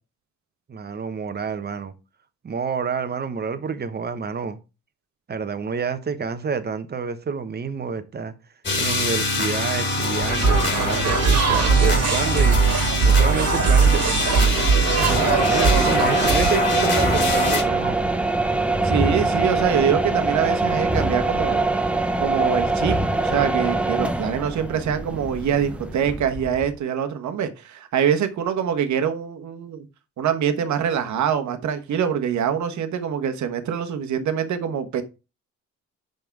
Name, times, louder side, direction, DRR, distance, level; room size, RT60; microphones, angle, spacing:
voice 1, 0.7-1.9 2.4-4.6 5.3-8.3 8.8-12.6 13.0-18.0, right 5 dB, 35° right, 1.0 m, -28 dB
sound 1, 8.6-17.6, left 2 dB, 40° left, 2.2 m, -24 dB
sound 2, 10.2-16.5, right 5 dB, 55° right, 1.8 m, -20 dB
sound 3, 14.9-26.8, right 2 dB, 5° right, 0.7 m, -23 dB
voice 2, 18.8-21.6 22.2-29.9 30.2-35.0, right 8 dB, 70° right, 1.2 m, -24 dB
5.9 x 5.3 x 4.6 m
cardioid pair, 90°, 30 cm